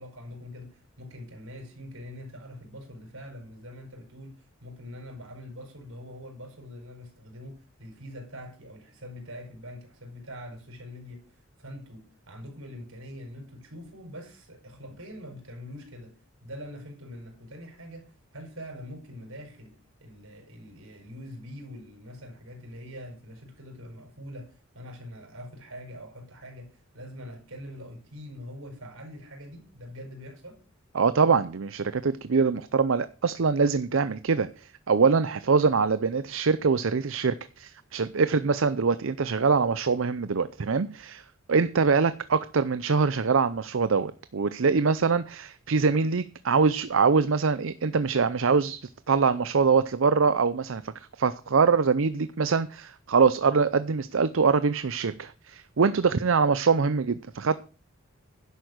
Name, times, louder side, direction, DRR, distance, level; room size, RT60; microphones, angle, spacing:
voice 1, 0.0-16.1 16.4-30.6, equal, 85° right, 5.0 m, -44 dB
voice 2, 30.9-48.8 49.1-57.6, right 5 dB, 65° right, 0.6 m, -24 dB
11.0 x 8.2 x 6.5 m
head